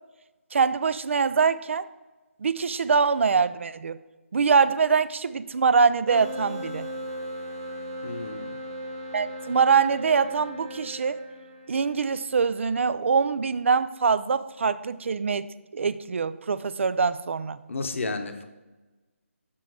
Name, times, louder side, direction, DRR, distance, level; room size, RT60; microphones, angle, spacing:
voice 1, 0.5-1.9 2.4-4.0 4.3-6.9 9.1-11.2 11.7-17.6, right 5 dB, 60° right, 15 dB, 0.4 m, -24 dB
sound 1, 6.1-12.5, equal, 20° right, 1.1 m, -37 dB
voice 2, 8.0-8.5 17.7-18.4, left 3 dB, 65° left, 7 dB, 0.8 m, -32 dB
6.0 x 5.9 x 4.7 m, 1.2 s
figure-of-eight pair, 165°, 8 cm